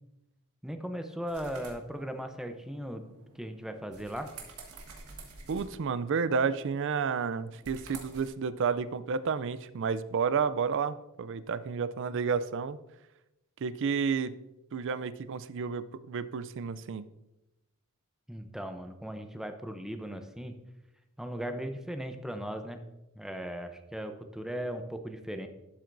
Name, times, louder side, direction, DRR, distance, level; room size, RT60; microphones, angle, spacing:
voice 1, 0.6-3.0 3.3-4.3 18.3-20.6 21.2-22.8 23.2-25.5, equal, ahead, 6 dB, 0.6 m, -38 dB
sound 1, 1.3-8.3, right 3 dB, 80° right, 1.6 m, -50 dB
voice 2, 5.5-12.8 13.6-14.4 14.7-17.0, right 5 dB, 60° right, 15 dB, 0.4 m, -31 dB
11.5 x 7.7 x 2.6 m, 0.95 s
head